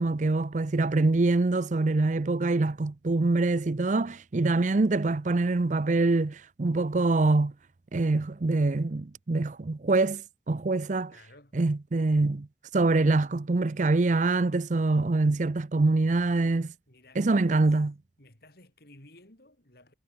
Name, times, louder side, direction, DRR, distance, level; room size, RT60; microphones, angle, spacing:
voice 1, 0.0-7.5 7.9-11.1 11.5-12.5 12.7-16.7 17.2-17.9, right 3 dB, 40° right, 0.5 m, -25 dB
voice 2, 11.1-11.6 16.9-17.7 18.2-19.9, left 1 dB, 55° left, 6.9 m, -55 dB
head